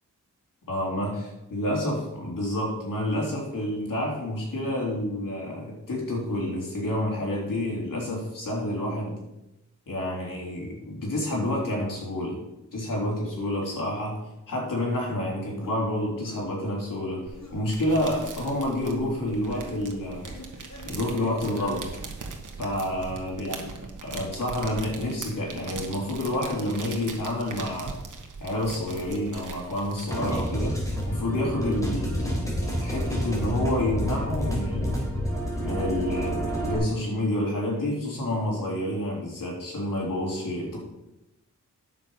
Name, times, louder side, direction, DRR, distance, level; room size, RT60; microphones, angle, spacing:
voice 1, 0.7-9.1 9.9-12.4 12.7-14.2 14.5-17.2 17.5-20.2 20.9-21.8 22.6-23.7 24.0-27.9 28.4-30.8 31.1-35.0 35.6-40.8, left 1 dB, 80° left, -3 dB, 3.7 m, -29 dB
sound 1, 15.6-15.7 16.2-16.5 17.4-17.7 18.3-18.6 19.5-19.8 20.2-21.7, left 2 dB, 55° left, 2.6 m, -45 dB
sound 2, 17.3-30.9, right 4 dB, 70° right, 1.5 m, -40 dB
sound 3, 30.1-36.8, equal, 10° left, 3.5 m, -29 dB
9.7 x 6.9 x 5.6 m, 0.94 s
wide cardioid pair, 100°, 32 cm